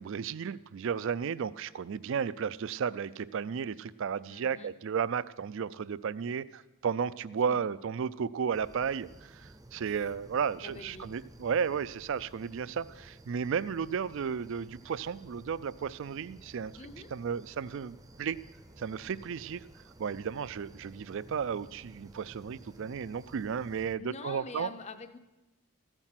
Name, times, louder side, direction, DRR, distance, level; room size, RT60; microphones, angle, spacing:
voice 1, 0.0-16.7 17.1-18.4 18.8-19.7 20.0-24.7, right 6 dB, 60° right, 18 dB, 0.4 m, -33 dB
voice 2, 4.3-4.7 7.5-7.6 9.9-10.1 10.6-11.1 16.8-17.1 24.0-25.2, left 4 dB, 30° left, 10 dB, 0.7 m, -45 dB
sound 1, 8.5-24.0, right 1 dB, 15° right, 0.6 m, -54 dB
14.0 x 9.0 x 5.8 m, 1.0 s
head